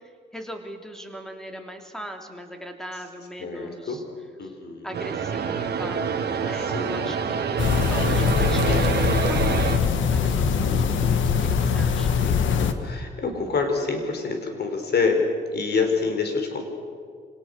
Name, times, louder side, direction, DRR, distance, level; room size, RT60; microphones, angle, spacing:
voice 1, 0.3-4.0 4.8-12.1, equal, 5° left, 4 dB, 3.2 m, -39 dB
voice 2, 3.4-4.0 4.4-5.0 6.5-7.1 10.7-11.3 12.2-16.6, left 4 dB, 55° left, 5 dB, 4.5 m, -27 dB
sound 1, 4.9-9.8, right 6 dB, 55° right, 1.8 m, -26 dB
sound 2, 7.6-12.7, left 6 dB, 75° left, 1.6 m, -22 dB
26.0 x 18.5 x 6.7 m, 2.1 s
cardioid pair, 90°, 20 cm